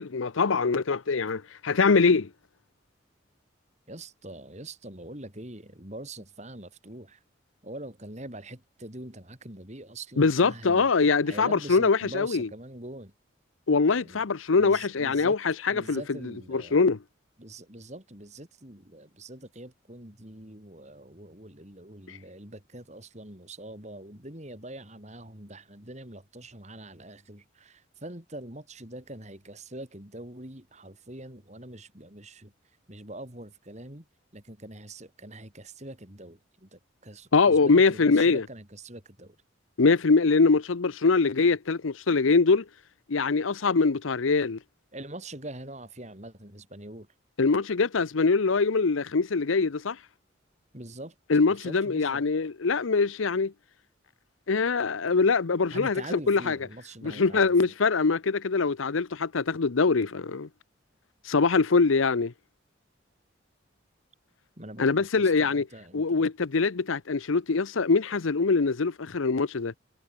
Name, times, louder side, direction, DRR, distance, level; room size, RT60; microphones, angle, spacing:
voice 1, 0.0-2.3 10.2-12.5 13.7-16.0 16.5-17.0 22.1-22.2 37.3-38.4 39.8-42.6 43.1-44.6 47.4-50.0 51.3-53.5 54.5-56.6 57.0-60.5 61.3-62.3 64.8-65.7 65.9-69.7, left 4 dB, 85° left, 0.7 m, -23 dB
voice 2, 3.9-7.2 7.6-13.1 13.9-14.2 14.6-15.4 15.7-16.8 17.4-32.5 32.9-34.0 34.3-39.4 44.9-47.1 50.7-51.1 51.5-52.2 55.7-57.7 64.6-66.2, right 1 dB, 35° right, 4.3 m, -43 dB
head